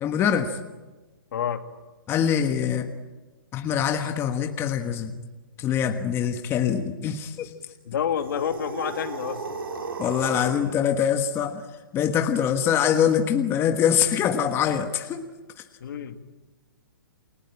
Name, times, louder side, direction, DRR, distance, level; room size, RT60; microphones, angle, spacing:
voice 1, 0.0-0.6 2.1-2.9 3.5-5.1 5.6-7.5 10.0-11.6 11.9-15.2, left 8 dB, 20° left, 7 dB, 1.4 m, -24 dB
voice 2, 7.9-9.4 15.8-16.2, left 8 dB, 65° left, 7 dB, 2.5 m, -28 dB
sound 1, 8.1-10.7, right 4 dB, 85° right, 5.4 m, -35 dB
29.0 x 20.5 x 8.8 m, 1.2 s
hypercardioid pair, 140°, 12 cm